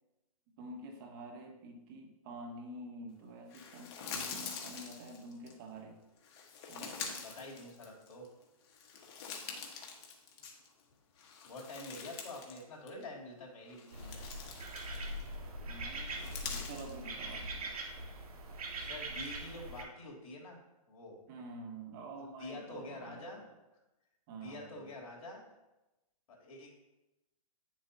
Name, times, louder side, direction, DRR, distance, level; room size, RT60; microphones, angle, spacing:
voice 1, 0.6-6.0 6.7-7.0 15.7-17.8 21.3-23.4 24.3-24.9, right 2 dB, 35° right, 4 dB, 1.0 m, -48 dB
sound 1, 3.5-5.5 6.2-8.3 8.6-10.8 11.2-12.6 12.9-13.0 13.7-15.3 16.0-17.0, left 5 dB, 40° left, 1.4 m, -45 dB
voice 2, 7.2-8.3 11.4-14.3 18.8-20.6 20.9-21.2 22.4-23.4 24.3-25.4 26.3-26.7, left 2 dB, 60° left, -2 dB, 2.9 m, -47 dB
sound 2, 13.9-19.8, right 1 dB, 75° right, 1.7 m, -42 dB
9.5 x 7.0 x 2.8 m, 1.0 s
hypercardioid pair, 145°, 19 cm